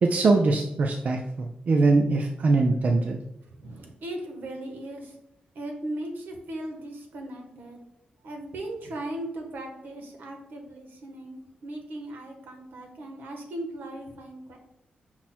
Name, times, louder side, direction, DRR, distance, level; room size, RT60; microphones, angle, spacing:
voice 1, 0.0-3.2, right 3 dB, 50° right, 3 dB, 0.4 m, -22 dB
voice 2, 3.6-5.1 5.5-7.8 8.2-14.6, right 1 dB, 80° right, 3 dB, 1.0 m, -38 dB
5.7 x 2.1 x 4.2 m, 0.80 s
wide cardioid pair, 100°, 3 cm